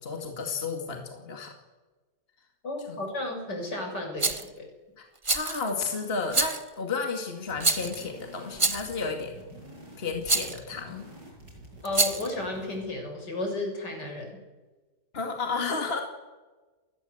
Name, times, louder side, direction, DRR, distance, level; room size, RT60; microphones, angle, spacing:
voice 1, 0.0-1.5 2.9-3.0 5.0-9.3 10.0-11.0 15.1-16.0, left 4 dB, 35° left, 3 dB, 2.6 m, -32 dB
voice 2, 2.6-4.7 11.8-14.3, left 2 dB, 75° left, 3 dB, 7.2 m, -33 dB
Rattle, 4.2-4.5 5.2-5.7 6.3-6.7 7.6-8.0 8.6-9.0 10.3-10.6 11.9-12.3, right 3 dB, 20° right, 0.9 m, -26 dB
sound 1, 7.5-12.9, right 1 dB, 80° right, 8.4 m, -48 dB
29.5 x 21.0 x 8.0 m, 1.3 s
omnidirectional pair, 1.8 m